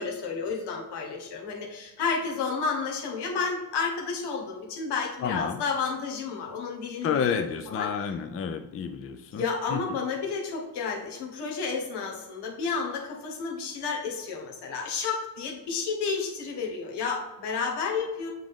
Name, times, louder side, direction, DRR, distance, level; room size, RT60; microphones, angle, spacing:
voice 1, 0.0-7.9 9.3-18.3, left 5 dB, 80° left, 0 dB, 1.4 m, -31 dB
voice 2, 5.2-5.6 7.0-9.4 9.7-9.8, left 7 dB, 35° left, 7 dB, 0.5 m, -29 dB
7.5 x 3.7 x 3.6 m, 1.1 s
cardioid pair, 115°, 40 cm